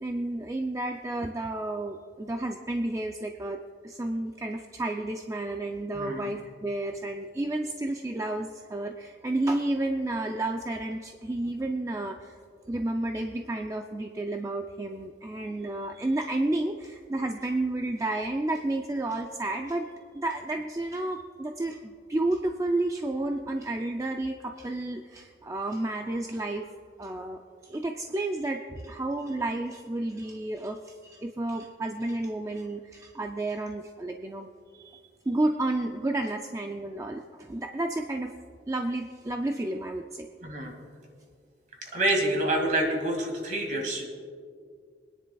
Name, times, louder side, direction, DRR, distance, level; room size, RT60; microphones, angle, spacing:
voice 1, 0.0-12.4 12.7-19.9 20.1-26.7 27.0-34.5 34.7-35.0 35.3-38.3 38.7-40.3, right 2 dB, 15° right, 4 dB, 0.3 m, -31 dB
voice 2, 5.9-6.3 40.4-40.7 41.8-44.1, right 1 dB, 45° right, 1 dB, 2.1 m, -27 dB
24.5 x 10.0 x 2.3 m, 2.2 s
head